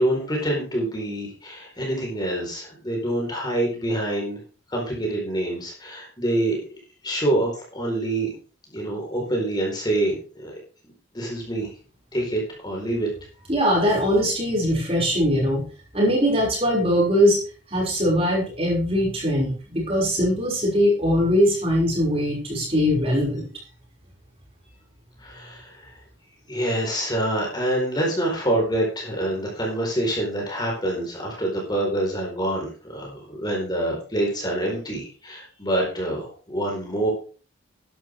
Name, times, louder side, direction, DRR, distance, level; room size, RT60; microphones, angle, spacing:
voice 1, 0.0-4.4 4.7-6.6 7.0-8.3 8.7-10.5 11.1-11.7 12.1-13.1 25.2-25.9 26.5-37.1, right 1 dB, 20° left, -1 dB, 4.4 m, -26 dB
voice 2, 13.5-15.6 15.9-17.4 17.7-23.5, equal, 30° right, -3 dB, 6.1 m, -21 dB
12.0 x 11.0 x 3.6 m, 0.37 s
head